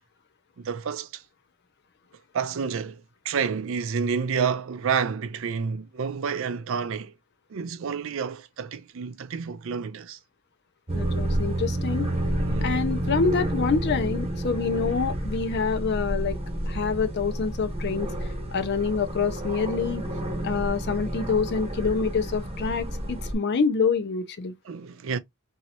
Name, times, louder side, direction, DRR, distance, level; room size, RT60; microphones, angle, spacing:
voice 1, 0.6-1.2 2.3-7.1 7.5-10.2 12.4-12.9 24.6-25.2, right 6 dB, 65° right, 0.4 m, -29 dB
voice 2, 10.9-12.1 12.6-16.4 16.7-18.1 18.5-20.0 20.4-24.5, left 5 dB, 50° left, 0.5 m, -26 dB
sound 1, 10.9-23.3, right 1 dB, 30° right, 1.1 m, -30 dB
3.0 x 2.7 x 2.7 m
head